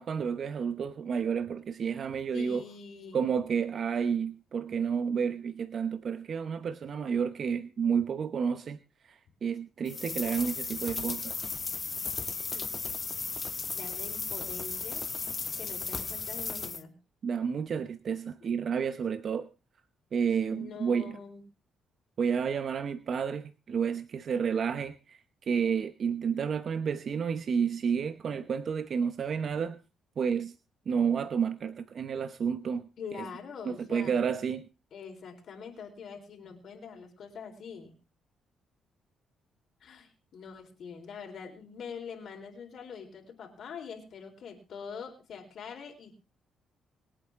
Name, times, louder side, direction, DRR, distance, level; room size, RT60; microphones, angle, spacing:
voice 1, 0.0-2.6 3.1-8.8 9.0-11.4 17.2-19.5 20.1-21.2 22.2-29.8 30.2-30.5 30.9-32.9 33.6-34.7, right 6 dB, 50° right, 0.8 m, -30 dB
voice 2, 2.3-3.3 12.5-12.7 13.7-15.0 15.6-17.0 20.4-21.4 33.0-34.2 34.9-37.9 39.8-46.2, left 6 dB, 60° left, 4.1 m, -44 dB
sound 1, 9.9-16.8, left 4 dB, 30° left, 0.9 m, -35 dB
26.0 x 8.8 x 3.6 m
cardioid pair, 105°, 0 cm